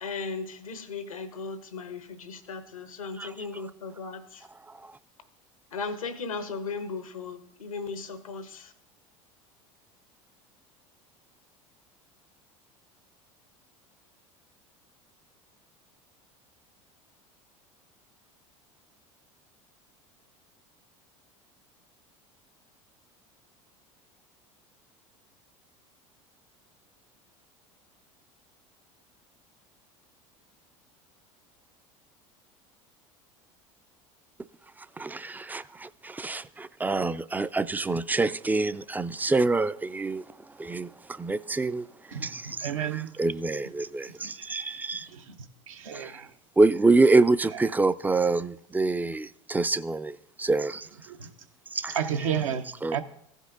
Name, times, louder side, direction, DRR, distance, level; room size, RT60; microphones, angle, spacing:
voice 1, 0.0-4.5 5.7-8.7, left 4 dB, 85° left, 1.0 m, -37 dB
voice 2, 35.0-40.2 40.6-41.9 42.2-45.1 45.9-46.2 46.6-50.9 51.7-52.0 52.8-53.0, right 3 dB, 10° right, 0.3 m, -26 dB
voice 3, 42.1-43.1 44.2-44.8 45.1-45.3 45.7-46.3 47.5-47.6 51.1-51.3 51.9-52.6 52.9-53.0, right 8 dB, 75° right, 0.9 m, -32 dB
15.5 x 5.3 x 3.8 m
hypercardioid pair, 75°, 17 cm